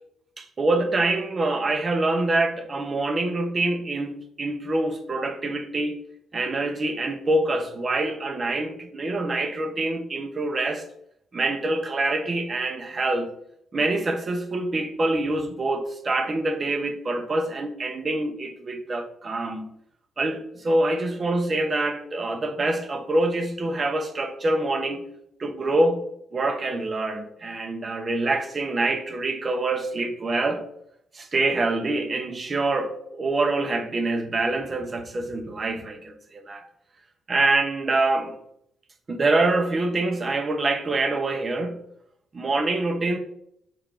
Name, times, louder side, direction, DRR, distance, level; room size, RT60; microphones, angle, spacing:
voice 1, 0.4-5.9 6.3-10.8 11.3-13.3 13.7-19.7 20.2-25.0 25.4-26.1 26.3-30.6 31.1-36.6 37.3-38.4 39.1-41.8 42.3-43.2, right 2 dB, 35° right, 1.1 m, -25 dB
6.9 x 4.4 x 3.8 m
cardioid pair, 90°, 0 cm